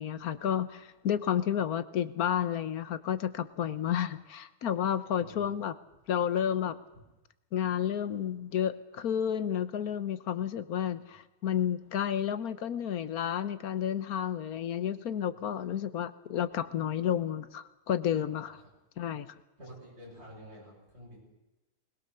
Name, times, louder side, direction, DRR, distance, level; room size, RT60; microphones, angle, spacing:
voice 1, 0.0-5.7 6.1-6.8 7.5-18.6 19.0-19.3, left 9 dB, 80° left, 14 dB, 1.4 m, -31 dB
voice 2, 3.8-4.2 5.2-5.4 15.1-15.7 18.3-18.6 19.6-21.2, equal, 45° right, -4 dB, 7.0 m, -51 dB
21.0 x 21.0 x 6.9 m, 1.0 s
omnidirectional pair, 1.6 m